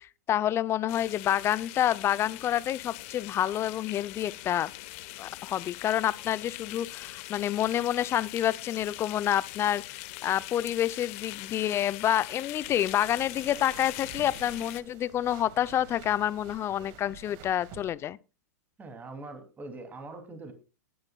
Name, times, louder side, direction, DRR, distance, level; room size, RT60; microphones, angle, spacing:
voice 1, 0.0-4.7 5.2-18.2, left 11 dB, 30° left, 0.6 m, -28 dB
sound 1, 0.9-14.8, left 20 dB, 50° left, 1.1 m, -42 dB
sound 2, 12.6-17.9, right 6 dB, 45° right, 2.0 m, -49 dB
voice 2, 18.8-20.5, right 2 dB, 20° right, 2.8 m, -42 dB
20.5 x 10.5 x 2.3 m
hypercardioid pair, 110°, 9 cm